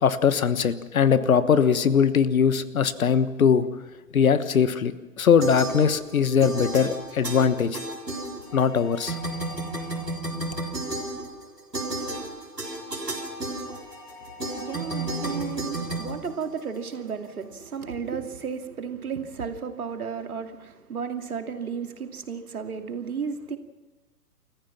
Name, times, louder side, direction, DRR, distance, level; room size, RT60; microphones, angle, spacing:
voice 1, 0.0-3.6 4.1-4.9 5.2-7.8 8.5-9.2, left 7 dB, 60° left, 1.4 m, -21 dB
sound 1, 5.4-6.1 6.4-8.8 9.1-16.9, right 2 dB, 90° right, 4.3 m, -32 dB
sound 2, 8.4-10.3 13.6-15.4, left 2 dB, 25° left, 3.9 m, -46 dB
voice 2, 14.5-23.6, right 6 dB, 65° right, 2.5 m, -33 dB
29.5 x 15.0 x 5.8 m
figure-of-eight pair, 130°, 47 cm